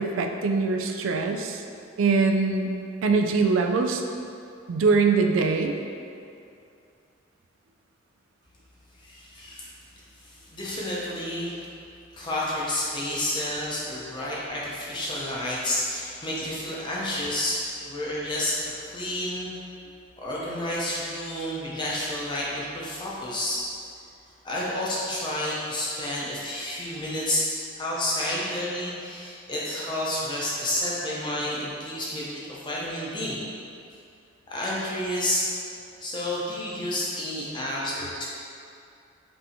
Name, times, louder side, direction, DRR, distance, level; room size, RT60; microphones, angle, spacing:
voice 1, 0.0-1.6 2.0-2.7 3.0-4.0 4.7-5.8 23.6-23.7, right 4 dB, 80° right, 4 dB, 0.3 m, -23 dB
voice 2, 9.0-9.7 10.2-11.6 12.1-19.5 20.2-23.6 24.4-27.4 27.8-33.4 34.5-35.4 36.0-38.2, left 1 dB, 25° left, -6 dB, 0.6 m, -30 dB
5.4 x 2.7 x 2.8 m, 2.5 s
head